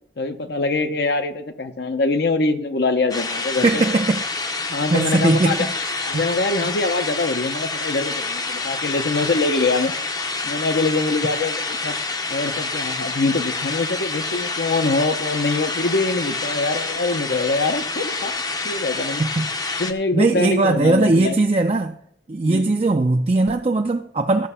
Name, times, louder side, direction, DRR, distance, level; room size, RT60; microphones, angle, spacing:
voice 1, 0.2-3.8 4.7-5.7 6.0-9.9 10.4-12.0 12.3-18.3 18.6-19.2 19.8-21.4 22.4-22.7, left 3 dB, 65° left, 0.7 m, -23 dB
sound 1, 3.1-19.9, left 3 dB, 20° left, 0.6 m, -27 dB
voice 2, 3.6-4.5 4.9-6.2 19.2-19.8 20.1-22.0 22.3-24.5, right 2 dB, 35° right, 0.4 m, -20 dB
13.0 x 5.8 x 5.6 m
head